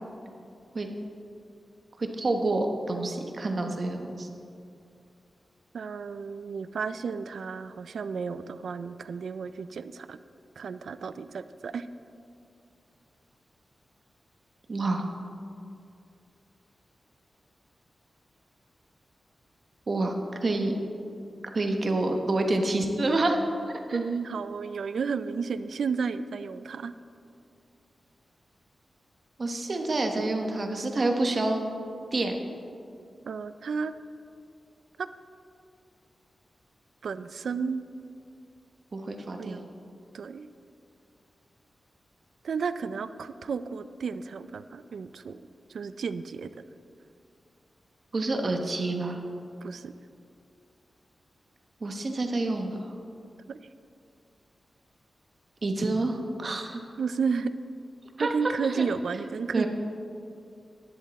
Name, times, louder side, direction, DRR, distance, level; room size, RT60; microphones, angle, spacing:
voice 1, 2.0-4.3 14.7-15.1 19.9-20.1 20.4-20.7 21.5-23.4 23.7-24.0 29.4-31.6 32.1-32.4 38.9-39.6 48.1-49.2 51.8-52.9 55.6-56.8 58.2-58.3 58.7-58.9 59.5-59.7, right 2 dB, 45° right, 4 dB, 1.1 m, -28 dB
voice 2, 5.7-10.2 10.6-11.9 23.9-26.9 33.3-33.9 35.0-35.1 37.0-37.8 39.4-39.7 40.1-40.5 42.4-45.4 45.7-46.6 49.6-49.9 53.5-53.6 57.0-57.5 58.2-59.7, right 5 dB, 85° right, 13 dB, 0.4 m, -32 dB
11.0 x 10.5 x 4.2 m, 2.5 s
wide cardioid pair, 100°, 0 cm